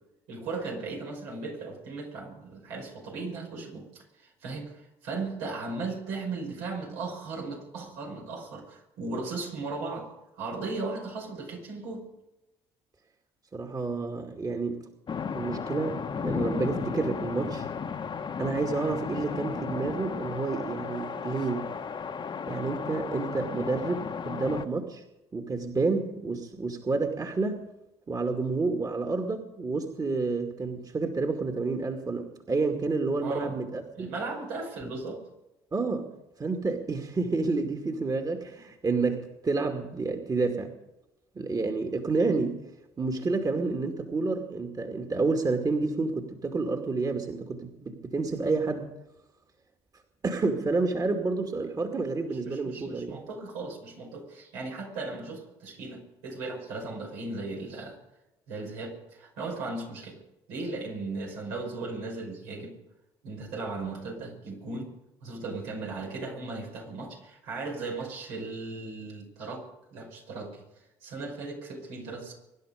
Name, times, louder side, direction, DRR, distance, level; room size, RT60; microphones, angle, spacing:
voice 1, 0.3-10.1 10.4-12.1 33.2-33.5 34.0-35.2 52.3-58.0 58.5-60.2 60.5-62.7 63.2-64.9 65.2-69.6 69.9-70.6 71.0-72.3, right 3 dB, 80° right, 0 dB, 5.7 m, -37 dB
voice 2, 13.5-14.8 15.3-17.7 18.4-21.7 22.5-25.0 25.3-27.7 28.1-34.1 34.8-34.9 35.7-36.1 36.4-40.7 41.3-42.6 43.0-48.9 50.2-53.2, right 3 dB, 30° right, 4 dB, 2.4 m, -29 dB
sound 1, 15.1-24.6, left 6 dB, 40° left, 1.3 m, -34 dB
24.5 x 11.5 x 5.2 m, 0.94 s
hypercardioid pair, 60°, 12 cm